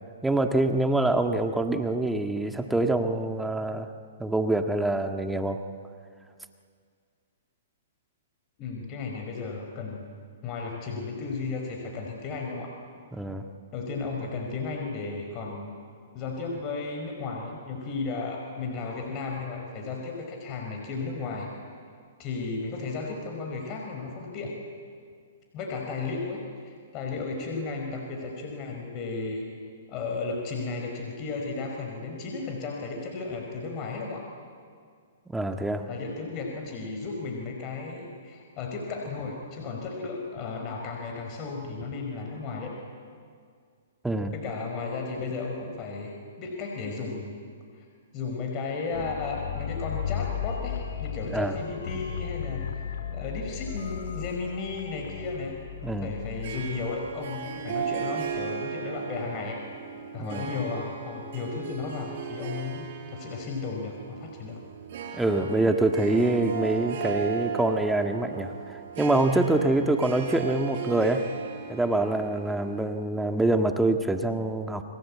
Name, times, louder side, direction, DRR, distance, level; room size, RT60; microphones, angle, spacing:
voice 1, 0.2-3.9 4.2-5.6 13.1-13.4 35.3-35.8 44.0-44.3 51.3-51.5 55.8-56.1 60.2-60.4 65.2-71.2 71.7-74.8, right 2 dB, 5° right, 5 dB, 1.7 m, -25 dB
voice 2, 8.6-10.1 10.4-12.7 13.7-15.8 16.1-21.5 22.2-24.5 25.5-26.4 26.6-29.5 29.9-34.3 35.9-42.7 44.3-47.4 47.7-47.8 48.1-52.8 53.1-55.6 56.0-59.6 60.1-64.6, left 4 dB, 35° left, 2 dB, 4.9 m, -34 dB
sound 1, 48.9-58.1 58.3-58.4, left 8 dB, 65° left, 2.5 m, -35 dB
Harp, 56.4-73.2, right 7 dB, 55° right, 5.9 m, -36 dB
29.5 x 22.0 x 8.5 m, 2.1 s
hypercardioid pair, 135°, 0 cm